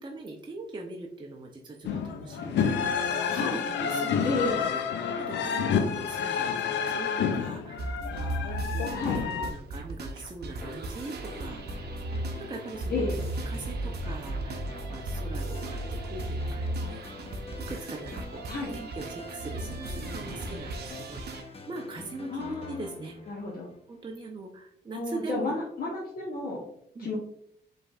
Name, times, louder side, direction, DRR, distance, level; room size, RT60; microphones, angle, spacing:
voice 1, 0.0-4.8 5.1-13.0 13.5-17.3 17.7-23.4 23.9-25.5 26.4-26.6 26.9-27.1, right 3 dB, 25° right, 0 dB, 0.6 m, -42 dB
sound 1, 1.8-9.5, left 7 dB, 90° left, 0.5 m, -29 dB
voice 2, 4.2-4.6 8.9-9.2 12.9-13.2 18.5-18.7 22.3-22.9 23.3-23.7 24.9-26.6 27.0-27.2, left 3 dB, 55° left, -5 dB, 1.0 m, -32 dB
sound 2, 7.8-21.4, right 1 dB, 65° right, 0.7 m, -35 dB
sound 3, 10.6-24.2, left 4 dB, 35° left, 0.7 m, -46 dB
5.0 x 3.3 x 2.5 m, 0.69 s
cardioid pair, 85°, 18 cm